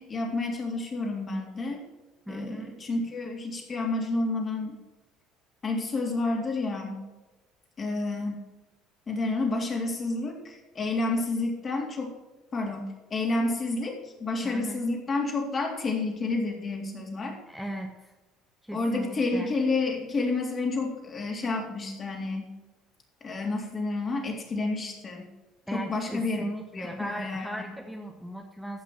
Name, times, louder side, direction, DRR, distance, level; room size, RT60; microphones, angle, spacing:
voice 1, 0.0-1.8 2.3-4.8 5.6-7.0 7.8-8.5 9.1-12.1 12.5-17.4 18.7-22.5 23.2-25.3 25.7-26.4 26.7-27.5, left 3 dB, 35° left, 1 dB, 3.6 m, -30 dB
voice 2, 2.3-2.8 14.4-14.8 17.5-18.1 18.6-19.5 25.7-28.8, right 1 dB, ahead, 2 dB, 1.5 m, -37 dB
15.0 x 6.1 x 6.2 m, 1.1 s
hypercardioid pair, 65°, 0 cm